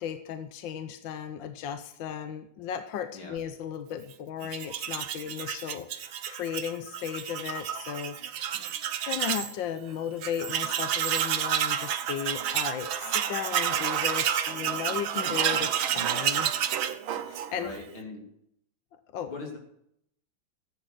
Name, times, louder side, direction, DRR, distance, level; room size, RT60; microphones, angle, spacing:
voice 1, 0.0-8.7 9.1-16.7 17.1-17.7 18.9-19.3, left 8 dB, 70° left, 9 dB, 1.5 m, -36 dB
Tools, 4.4-9.5 9.9-10.0 10.2-17.8, right 9 dB, 85° right, 1.8 m, -30 dB
voice 2, 17.5-18.2 19.3-19.6, left 3 dB, 85° left, 1 dB, 4.0 m, -40 dB
14.5 x 9.0 x 7.9 m, 0.74 s
omnidirectional pair, 2.2 m